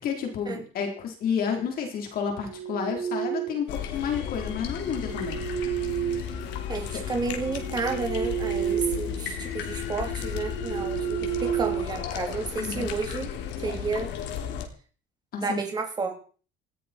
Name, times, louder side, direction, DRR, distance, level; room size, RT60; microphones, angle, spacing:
voice 1, 0.0-5.4 6.9-7.0 12.6-12.9 15.3-15.6, left 7 dB, 50° left, 3 dB, 3.9 m, -30 dB
sound 1, 2.2-3.7 4.7-6.8 7.3-9.2 9.5-9.7 10.2-12.6, right 11 dB, 70° right, 6.8 m, -32 dB
sound 2, 3.7-14.7, left 9 dB, 70° left, 3.2 m, -34 dB
voice 2, 6.7-13.3 13.6-14.1 15.4-16.1, right 4 dB, 20° right, 3 dB, 3.6 m, -31 dB
19.5 x 15.5 x 4.5 m, 0.40 s
cardioid pair, 170°, 19 cm